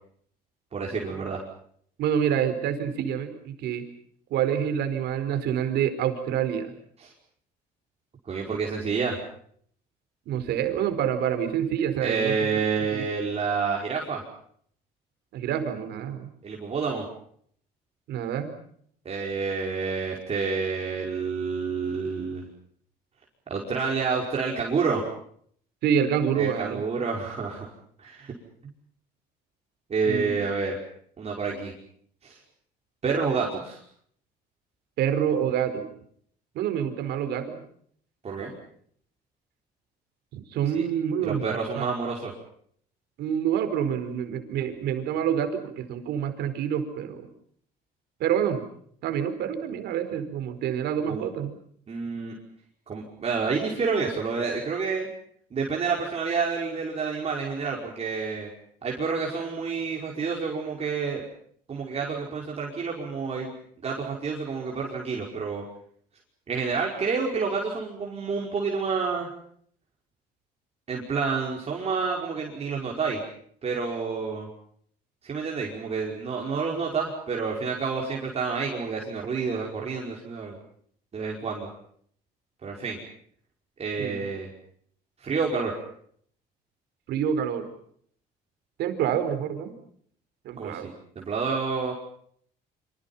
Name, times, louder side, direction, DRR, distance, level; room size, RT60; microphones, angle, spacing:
voice 1, 0.7-1.4 7.0-7.1 8.3-9.2 12.0-14.2 16.4-17.1 19.1-22.4 23.5-25.0 26.4-27.7 28.0-28.3 29.9-30.8 31.2-31.7 32.2-32.4 33.0-33.8 38.2-38.5 40.7-40.8 41.2-42.3 51.1-51.3 51.9-52.4 52.9-55.1 55.5-58.5 58.8-61.2 61.7-63.5 63.8-65.6 66.5-69.3 70.9-73.2 73.6-74.5 75.2-80.6 81.1-81.7 82.6-83.0 83.8-84.5 85.2-85.8 90.6-91.9, right 5 dB, 40° right, -2 dB, 5.4 m, -29 dB
voice 2, 2.0-3.9 4.3-6.7 10.3-12.6 12.9-13.0 15.3-16.3 18.1-18.5 25.8-26.8 30.0-30.3 35.0-35.9 36.5-37.6 38.4-38.5 40.3-41.5 41.8-41.9 43.2-47.3 48.2-48.6 49.0-51.6 84.0-84.2 87.1-87.7 88.8-89.7 90.4-90.9, right 9 dB, 80° right, 9 dB, 4.7 m, -27 dB
28.0 x 26.5 x 5.7 m, 0.63 s
cardioid pair, 110°, 17 cm